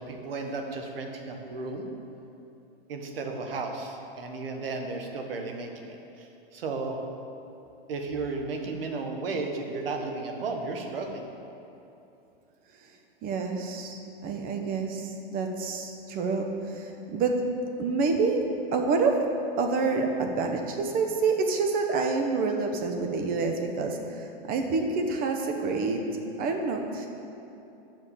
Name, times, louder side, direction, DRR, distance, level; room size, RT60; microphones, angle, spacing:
voice 1, 0.0-1.9 2.9-7.0 7.9-11.3, right 3 dB, 75° right, 3 dB, 1.3 m, -34 dB
voice 2, 13.2-17.4 17.8-18.4 18.7-19.2 19.6-26.0 26.4-27.1, right 4 dB, 30° right, 4 dB, 1.0 m, -28 dB
7.7 x 5.8 x 7.0 m, 2.8 s
hypercardioid pair, 130°, 29 cm